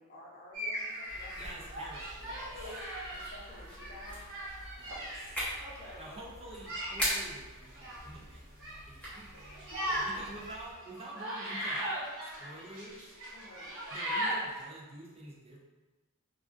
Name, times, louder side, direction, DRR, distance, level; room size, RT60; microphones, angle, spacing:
voice 1, 0.0-1.6 2.6-4.4 5.6-6.3 9.7-10.0 13.3-13.8, left 2 dB, 45° left, -4 dB, 0.6 m, -51 dB
sound 1, 0.5-6.0 6.6-7.2 7.6-8.1 8.6-8.8 9.0-14.6, equal, 60° right, 1.3 m, -38 dB
sound 2, 1.1-10.7, equal, 5° left, 0.9 m, -42 dB
voice 2, 1.4-2.6 4.8-5.5 6.0-9.3 9.7-11.9 12.2-13.2 13.9-15.6, right 1 dB, 25° right, -4 dB, 0.5 m, -48 dB
3.3 x 2.4 x 2.4 m, 1.2 s
head